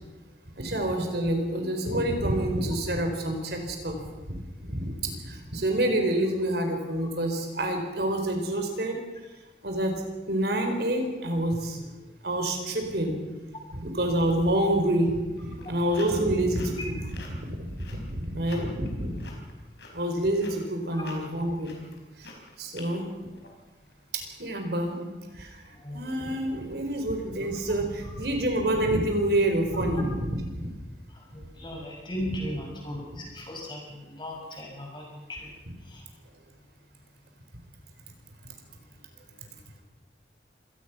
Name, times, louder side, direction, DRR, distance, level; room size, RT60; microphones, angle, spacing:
voice 1, 0.6-4.0 4.2-9.0 9.6-11.8 12.2-13.1 13.7-19.2 19.9-21.7 22.2-22.3 22.6-23.1 24.1-25.6 25.9-30.7, right 1 dB, 60° right, 4 dB, 4.4 m, -28 dB
sound 1, 15.4-24.0, left 3 dB, 70° left, 4.8 m, -48 dB
voice 2, 25.7-26.1 31.1-35.5 35.8-36.0, equal, 25° left, 0 dB, 6.6 m, -37 dB
26.0 x 18.5 x 6.0 m, 1.2 s
head